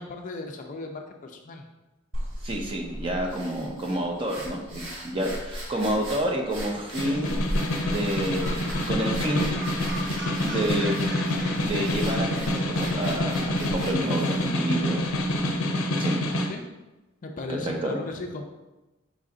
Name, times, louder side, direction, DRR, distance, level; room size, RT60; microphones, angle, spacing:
voice 1, 0.0-1.7 5.7-5.8 16.5-16.6 17.2-18.5, left 3 dB, 40° left, 3 dB, 0.4 m, -36 dB
sound 1, 2.1-15.6, equal, 75° right, 1.1 m, -37 dB
voice 2, 2.4-7.4 7.8-9.5 10.4-11.0 11.6-15.1 16.0-16.1 17.5-17.9, right 1 dB, 25° right, 1 dB, 0.5 m, -29 dB
Snare drum, 6.8-16.5, left 1 dB, 90° left, 0.5 m, -27 dB
Gull seagull, 7.4-13.2, right 1 dB, 55° right, 0.8 m, -40 dB
5.1 x 2.5 x 3.7 m, 1.1 s
head